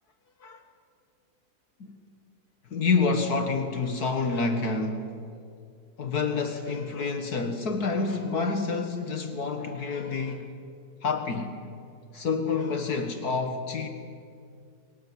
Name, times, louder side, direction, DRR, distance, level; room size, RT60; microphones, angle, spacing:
voice 1, 2.7-5.1 6.0-10.5 11.0-11.7 12.1-13.9, left 4 dB, 75° left, 2.1 m, -28 dB
28.5 x 25.0 x 7.5 m
omnidirectional pair, 1.7 m